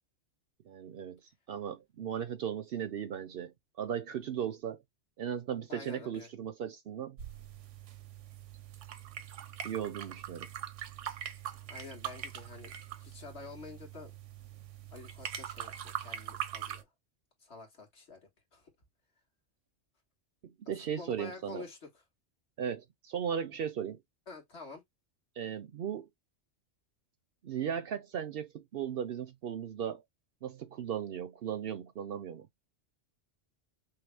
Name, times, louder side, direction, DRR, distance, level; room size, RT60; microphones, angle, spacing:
voice 1, 0.7-1.2 1.5-4.8 5.2-7.2 9.6-10.5 20.4-21.6 22.6-24.0 25.4-26.1 27.4-30.0 30.4-32.5, right 8 dB, 60° right, 0.7 m, -37 dB
voice 2, 5.7-6.3 11.7-12.7 13.0-14.1 14.9-16.9 17.4-18.2 18.5-18.7 21.0-21.9 24.3-24.8, left 3 dB, 65° left, 1.9 m, -48 dB
sound 1, 7.2-16.8, right 10 dB, 85° right, 1.1 m, -42 dB
5.6 x 2.0 x 3.3 m
omnidirectional pair, 1.2 m